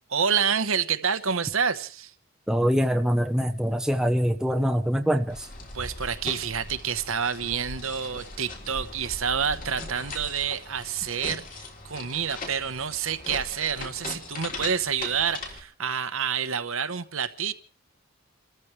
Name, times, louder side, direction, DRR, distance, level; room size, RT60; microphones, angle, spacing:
voice 1, 0.1-2.1 5.7-17.5, right 7 dB, 70° right, 10 dB, 1.1 m, -28 dB
voice 2, 2.5-5.5, equal, 5° right, 5 dB, 0.9 m, -24 dB
sound 1, 5.3-15.6, left 2 dB, 35° left, 3.3 m, -39 dB
29.5 x 14.0 x 3.3 m, 0.39 s
head